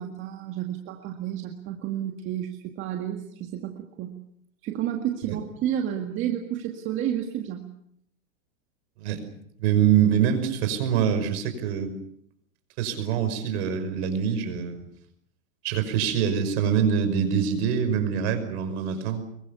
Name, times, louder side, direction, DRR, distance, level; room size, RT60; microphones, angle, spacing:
voice 1, 0.0-4.2 4.6-7.7, right 11 dB, 30° right, 3 dB, 1.9 m, -31 dB
voice 2, 9.6-12.0 12.8-14.9 15.6-19.2, right 8 dB, 55° right, 9 dB, 5.7 m, -24 dB
25.0 x 23.0 x 7.0 m, 0.71 s
supercardioid pair, 155°, 40 cm